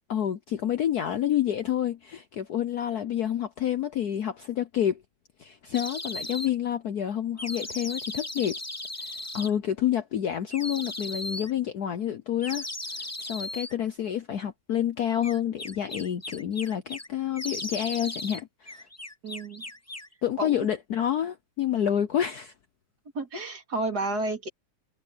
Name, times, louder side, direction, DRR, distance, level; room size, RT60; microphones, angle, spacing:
voice 1, 0.1-5.0 5.4-8.6 9.3-12.7 13.0-18.9 20.2-22.5, left 10 dB, 60° left, 1.1 m, -28 dB
sound 1, 5.7-6.5 7.4-9.5 10.5-11.5 12.4-13.7 15.2-17.1 17.4-18.4 18.7-20.1, left 2 dB, 15° left, 0.6 m, -37 dB
voice 2, 19.2-19.6 20.4-20.7 23.1-24.5, right 2 dB, 45° right, 3.4 m, -31 dB
omnidirectional pair, 2.3 m